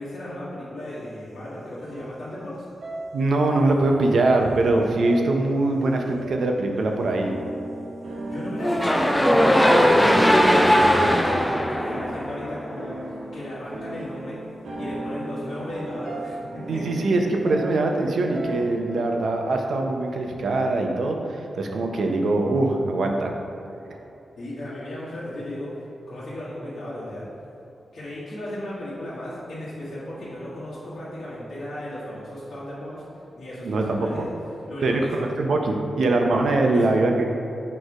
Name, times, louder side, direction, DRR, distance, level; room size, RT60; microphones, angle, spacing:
voice 1, 0.0-2.6 8.2-14.4 14.8-17.0 24.4-27.3 27.9-33.0 33.4-34.3 34.7-35.3 36.7-36.9, left 1 dB, 55° left, -11 dB, 1.4 m, -35 dB
sound 1, 1.8-2.5 2.8-3.6 3.9-4.6 5.0-5.8 6.1-6.6 7.0-18.8, right 1 dB, 85° right, 1.2 m, -36 dB
voice 2, 3.1-7.4 16.7-23.3 33.6-34.3 34.8-37.1, right 2 dB, 65° right, 2 dB, 0.6 m, -22 dB
sound 2, 8.6-12.8, equal, 5° left, 0.4 m, -19 dB
6.5 x 3.2 x 4.7 m, 2.9 s
wide cardioid pair, 160°, 0 cm